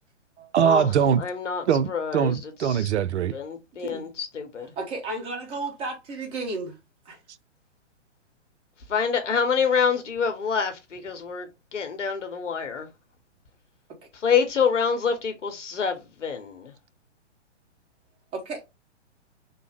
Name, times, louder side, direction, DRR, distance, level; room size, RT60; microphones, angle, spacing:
voice 1, 0.5-1.2 1.7-3.3, right 8 dB, 70° right, 0.5 m, -22 dB
voice 2, 1.2-1.6 1.9-2.3 3.3-4.7 8.9-11.5 11.7-12.9 14.2-16.7, left 6 dB, 80° left, 1.0 m, -26 dB
voice 3, 4.8-6.8 7.1-7.2 18.3-18.6, right 3 dB, 15° right, 0.8 m, -33 dB
3.2 x 2.0 x 3.4 m
figure-of-eight pair, 125°, 36 cm